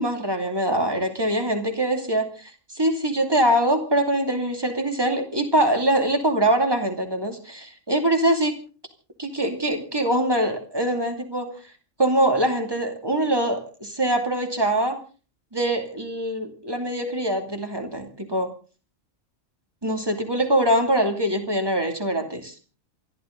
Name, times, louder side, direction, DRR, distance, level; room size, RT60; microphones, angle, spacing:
voice 1, 0.0-8.5 9.2-11.6 12.0-15.0 15.5-18.5 19.8-22.5, right 1 dB, 15° right, 5 dB, 2.7 m, -23 dB
27.5 x 12.5 x 3.9 m, 0.37 s
omnidirectional pair, 1.4 m